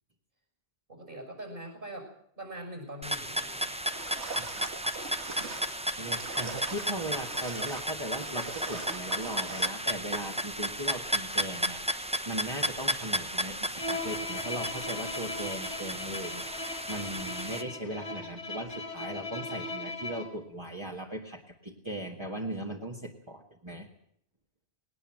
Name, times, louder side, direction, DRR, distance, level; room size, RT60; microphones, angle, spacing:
voice 1, 0.9-3.8, right 1 dB, 50° right, 4 dB, 6.4 m, -43 dB
sound 1, 3.0-17.6, equal, 5° right, 0.8 m, -34 dB
sound 2, 3.8-9.7, right 4 dB, 80° right, 2.0 m, -42 dB
voice 2, 4.4-4.7 6.0-23.9, right 1 dB, 25° right, -2 dB, 1.9 m, -38 dB
Bowed string instrument, 13.8-20.4, left 2 dB, 90° left, 2.8 m, -38 dB
19.5 x 18.5 x 7.7 m, 0.67 s
omnidirectional pair, 1.1 m